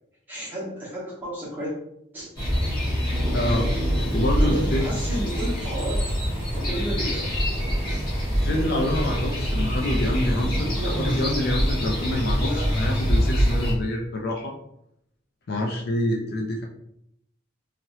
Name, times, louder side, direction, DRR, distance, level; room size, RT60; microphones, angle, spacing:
voice 1, 0.3-1.7 2.1-2.3 3.1-3.7 4.4-6.1 6.5-7.3 10.7-11.5 12.3-12.8, equal, 10° right, -9 dB, 1.3 m, -33 dB
sound 1, 2.4-13.7, equal, 20° left, 1.1 m, -25 dB
voice 2, 3.3-3.6 4.1-4.8 8.3-14.5 15.5-16.7, left 1 dB, 50° left, 1 dB, 0.4 m, -26 dB
3.2 x 2.8 x 2.7 m, 0.76 s
head